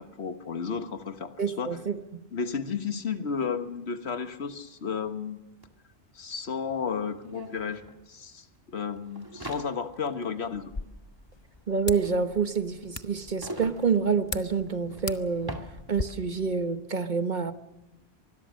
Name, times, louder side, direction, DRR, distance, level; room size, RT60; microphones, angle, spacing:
voice 1, 0.0-1.8 2.3-5.4 6.1-10.7, left 6 dB, 90° left, 9 dB, 1.6 m, -33 dB
voice 2, 1.4-2.0 11.7-15.5 15.9-17.5, right 5 dB, 45° right, 9 dB, 1.3 m, -27 dB
sound 1, 5.6-5.7 5.9-16.4, right 1 dB, 20° right, 2.0 m, -45 dB
sound 2, 10.5-16.0, left 3 dB, 30° left, 0.8 m, -40 dB
24.5 x 21.0 x 6.4 m, 0.95 s
omnidirectional pair, 1.1 m